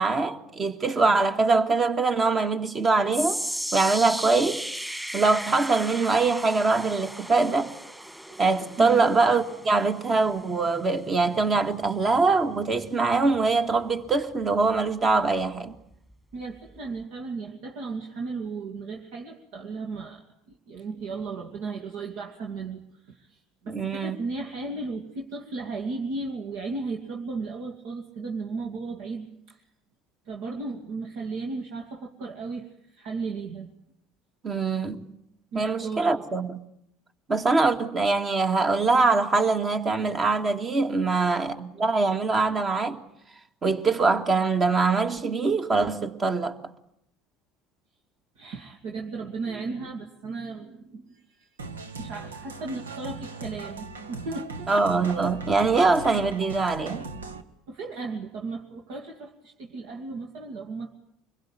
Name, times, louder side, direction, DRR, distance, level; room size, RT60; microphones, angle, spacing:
voice 1, 0.0-3.4 3.7-4.7 5.1-7.7 8.4-15.8 23.7-24.2 34.4-35.0 35.5-36.6 37.3-43.0 43.6-46.5 54.7-57.0, right 3 dB, 35° right, 2.2 m, -23 dB
sound 1, 3.1-15.4 15.8-16.1 16.8-16.9, equal, 10° right, 2.5 m, -37 dB
voice 2, 16.3-20.2 20.7-23.4 23.6-29.6 30.3-33.7 35.5-36.2 48.4-51.5 52.0-54.7 57.7-60.9, right 3 dB, 65° right, 2.5 m, -35 dB
sound 2, 51.6-57.4, right 3 dB, 85° right, 1.3 m, -39 dB
25.0 x 22.0 x 8.8 m
hypercardioid pair, 70°, 0 cm